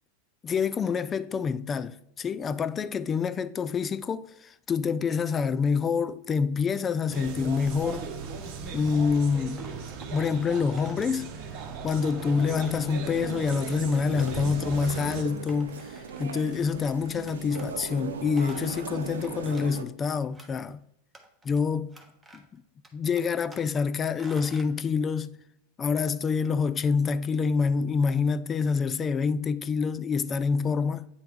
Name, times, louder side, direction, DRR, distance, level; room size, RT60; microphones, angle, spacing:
voice 1, 0.4-8.1 8.7-9.6 10.1-11.3 11.8-20.8 21.4-22.0 22.3-22.6 22.9-25.4 25.8-31.1, left 5 dB, 25° left, 0.3 m, -27 dB
sound 1, 7.1-15.2, right 5 dB, 55° right, 0.9 m, -38 dB
sound 2, 8.2-9.0 9.6-10.2 10.8-11.1 11.5-12.3 12.6-13.0 13.3-13.6 14.2-14.4 14.7-14.8 15.5-16.5 17.3-17.7 18.1-19.7 20.0-20.7 21.1-21.6 21.9-22.6 22.8-23.8 24.2-24.7, right 2 dB, 10° right, 1.1 m, -51 dB
sound 3, 12.4-19.8, right 6 dB, 80° right, 0.6 m, -38 dB
8.8 x 3.5 x 3.5 m
hypercardioid pair, 95°, 0 cm